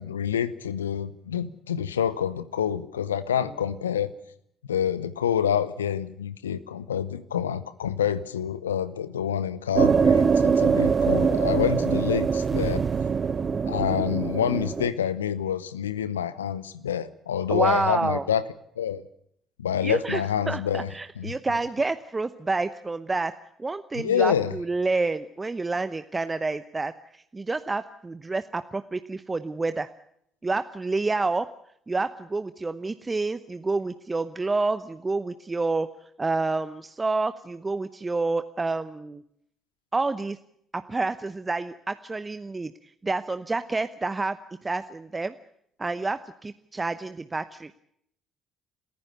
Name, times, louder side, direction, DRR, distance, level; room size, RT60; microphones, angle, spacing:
voice 1, 0.0-4.1 4.7-12.8 13.7-18.4 18.8-19.0 19.6-20.9 21.2-21.3 23.9-24.5, left 9 dB, 85° left, 16 dB, 0.8 m, -27 dB
sound 1, 9.8-14.9, right 6 dB, 40° right, 1.1 m, -23 dB
voice 2, 13.3-13.8 17.5-18.2 19.8-23.3 23.6-26.9 27.3-29.9 30.4-31.4 31.9-35.9 36.2-39.2 39.9-40.4 40.7-42.7 43.0-44.4 44.6-45.3 45.8-47.7, right 3 dB, 25° right, 11 dB, 0.9 m, -28 dB
28.0 x 15.0 x 6.7 m, 0.70 s
hypercardioid pair, 50°, 0 cm